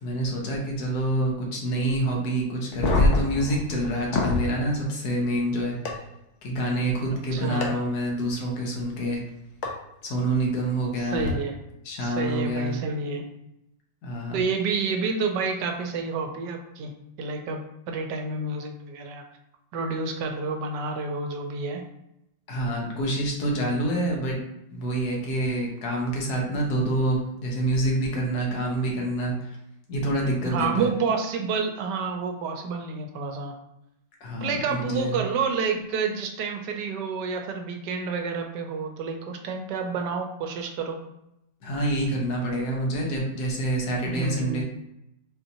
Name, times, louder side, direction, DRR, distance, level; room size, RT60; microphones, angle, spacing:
voice 1, 0.0-5.8 6.4-9.2 10.0-11.4 11.8-12.8 14.0-14.4 22.5-24.4 24.7-29.6 29.9-30.9 34.2-35.2 41.6-44.6, right 1 dB, 60° left, -1 dB, 1.3 m, -27 dB
sound 1, 2.7-4.5 5.9-6.0 7.6-7.7 9.6-9.7 11.1-11.3, left 2 dB, 85° left, 0.6 m, -24 dB
voice 2, 7.3-7.8 11.0-11.6 12.0-13.3 14.3-16.9 17.2-17.6 17.9-19.2 19.7-21.8 30.4-33.5 34.4-41.0 44.1-44.6, right 4 dB, 75° right, 4 dB, 1.1 m, -29 dB
4.4 x 2.7 x 2.6 m, 0.84 s
omnidirectional pair, 2.0 m